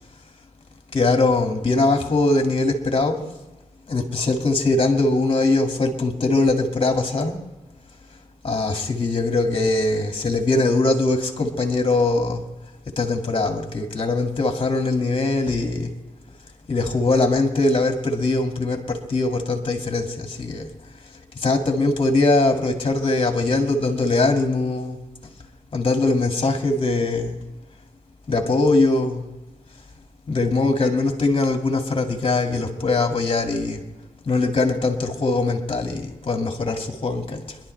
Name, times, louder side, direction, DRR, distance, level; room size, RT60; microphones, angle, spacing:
voice 1, 0.9-3.3 3.9-7.4 8.4-12.5 13.0-15.9 16.7-20.7 21.4-25.0 25.7-27.4 28.3-29.2 30.3-33.8 34.2-37.6, left 2 dB, 40° left, 4 dB, 2.1 m, -21 dB
26.5 x 11.5 x 3.3 m, 1.1 s
cardioid pair, 60°, 14 cm